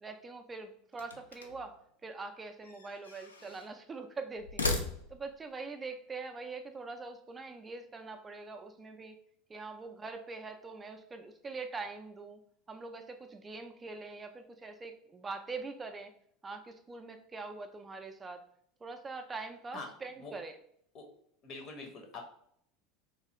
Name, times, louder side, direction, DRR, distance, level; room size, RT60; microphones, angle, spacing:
voice 1, 0.0-4.7 5.1-9.2 9.5-12.4 12.7-16.1 16.4-18.4 18.8-20.6, right 3 dB, 20° right, 6 dB, 0.3 m, -43 dB
sound 1, 0.9-1.7 2.6-3.7 4.4-5.4, left 2 dB, 90° left, 0.3 m, -37 dB
voice 2, 21.4-22.2, left 3 dB, 45° left, 4 dB, 0.8 m, -44 dB
3.1 x 2.3 x 2.9 m, 0.67 s
hypercardioid pair, 80°, 0 cm